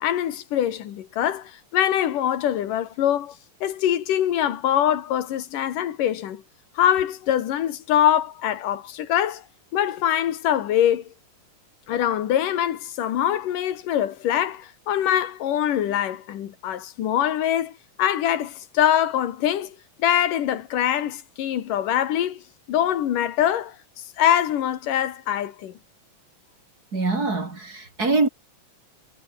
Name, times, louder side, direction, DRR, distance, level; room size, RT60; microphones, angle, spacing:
voice 1, 0.0-3.4 3.6-6.4 6.8-9.4 9.7-11.1 11.9-17.7 18.0-22.4 22.7-23.8 24.2-25.7, left 11 dB, 90° left, 3.3 m, -23 dB
voice 2, 26.9-28.3, right 3 dB, 30° right, 3.6 m, -23 dB
omnidirectional pair, 3.6 m